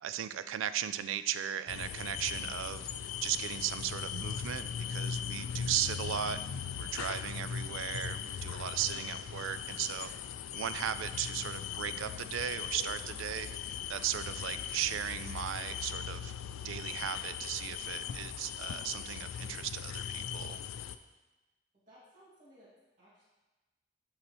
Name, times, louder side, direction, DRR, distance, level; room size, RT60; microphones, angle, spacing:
voice 1, 0.0-6.4 6.8-10.1 10.5-16.3 16.6-20.6, right 10 dB, 75° right, 12 dB, 0.3 m, -37 dB
sound 1, 1.7-21.0, left 8 dB, 90° left, 0.3 m, -39 dB
voice 2, 21.9-22.7 23.0-23.2, equal, 40° right, -9 dB, 1.9 m, -60 dB
8.5 x 4.0 x 3.0 m, 1.2 s
head